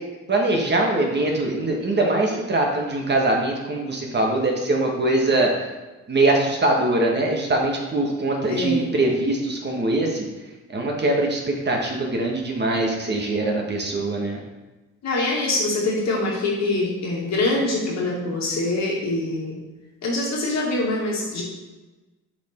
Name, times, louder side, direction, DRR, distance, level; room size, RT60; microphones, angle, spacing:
voice 1, 0.3-5.5 6.1-10.2 10.7-14.4, right 2 dB, 35° right, 0 dB, 1.5 m, -22 dB
voice 2, 8.5-8.9 15.0-19.6 20.0-21.4, left 2 dB, 60° left, -3 dB, 2.2 m, -24 dB
7.1 x 4.1 x 4.4 m, 1.1 s
cardioid pair, 90°, 30 cm